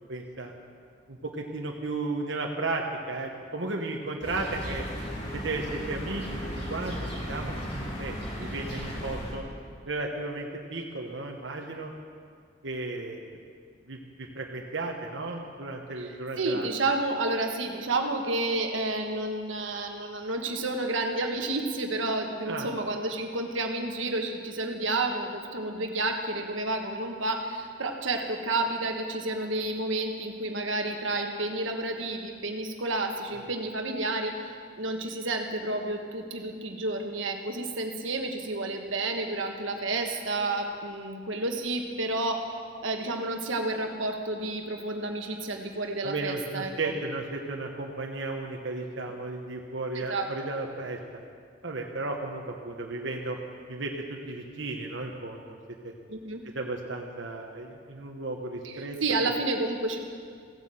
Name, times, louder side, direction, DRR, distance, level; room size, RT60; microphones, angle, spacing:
voice 1, 0.1-0.5 1.1-4.9 5.3-6.4 6.7-7.0 7.3-7.6 8.0-9.4 9.8-11.9 12.6-13.3 13.9-16.7 22.5-22.7 33.3-33.4 46.0-51.0 51.6-53.4 53.7-55.6 55.8-55.9 56.4-59.0, right 2 dB, 70° right, 1 dB, 1.2 m, -34 dB
sound 1, 4.2-9.4, equal, 30° left, 2.7 m, -35 dB
voice 2, 16.4-42.5 42.8-46.9 49.9-50.3 56.1-56.4 58.6-60.0, right 2 dB, 90° right, 3 dB, 1.4 m, -30 dB
16.0 x 9.7 x 7.8 m, 2.1 s
head